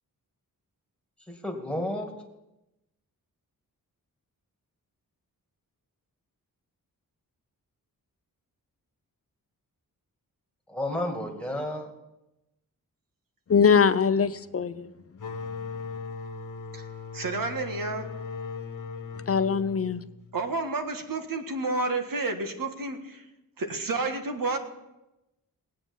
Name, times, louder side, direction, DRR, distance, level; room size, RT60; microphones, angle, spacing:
voice 1, 1.3-2.1 10.7-11.9, left 1 dB, 5° left, 2.2 m, -31 dB
voice 2, 13.5-14.9 19.3-20.0, left 6 dB, 40° left, 0.7 m, -22 dB
sound 1, 15.2-20.6, left 5 dB, 55° left, 1.4 m, -38 dB
voice 3, 17.1-18.2 20.3-23.2 23.6-24.6, right 3 dB, 65° right, 1.7 m, -30 dB
18.5 x 8.9 x 7.2 m
wide cardioid pair, 130°, 36 cm